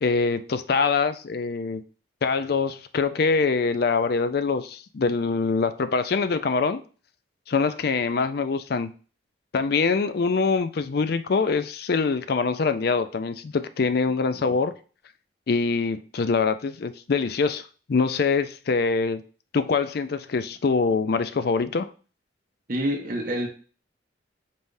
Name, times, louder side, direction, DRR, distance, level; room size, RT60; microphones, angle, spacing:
voice 1, 0.0-1.8 2.2-6.8 7.5-8.9 9.5-14.7 15.5-17.6 17.9-19.2 19.5-21.9, left 4 dB, 55° left, 0.4 m, -24 dB
voice 2, 22.7-23.5, equal, 45° right, 1.2 m, -27 dB
5.3 x 3.4 x 2.6 m
head